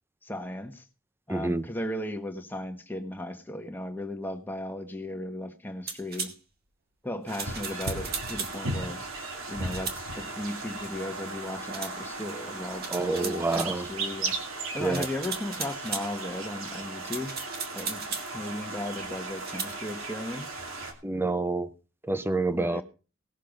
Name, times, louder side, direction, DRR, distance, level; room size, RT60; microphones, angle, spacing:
voice 1, 0.2-0.8 1.3-6.3 7.0-9.0 9.5-14.3 14.7-17.3 17.7-18.0 18.3-20.6 22.5-22.8, left 1 dB, 10° left, 1.4 m, -36 dB
voice 2, 1.3-1.7 12.9-13.9 14.8-15.1 21.0-21.7 22.1-22.8, right 2 dB, 10° right, 0.7 m, -27 dB
sound 1, 5.9-6.3 7.3-8.6 9.7-10.0 11.7-12.0 12.8-13.7 14.9-16.1 17.0-18.3 19.4-19.7, right 5 dB, 50° right, 2.0 m, -36 dB
sound 2, 7.3-20.9, right 2 dB, 80° right, 2.5 m, -36 dB
18.0 x 6.6 x 5.2 m
head